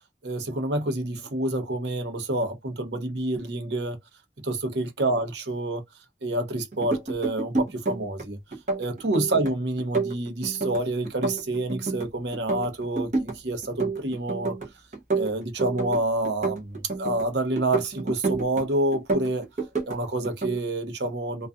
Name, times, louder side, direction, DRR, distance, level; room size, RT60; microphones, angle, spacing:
voice 1, 0.2-4.0 4.4-5.8 6.2-8.4 8.8-14.5 15.1-19.5 19.9-21.5, right 2 dB, 80° right, 0.8 m, -28 dB
sound 1, 6.7-8.2 8.5-9.5 9.8-12.1 12.3-13.4 13.6-14.7 14.9-17.2 17.6-18.6 18.9-20.0 20.2-20.6, right 3 dB, 45° right, 0.7 m, -29 dB
2.4 x 2.3 x 2.4 m
head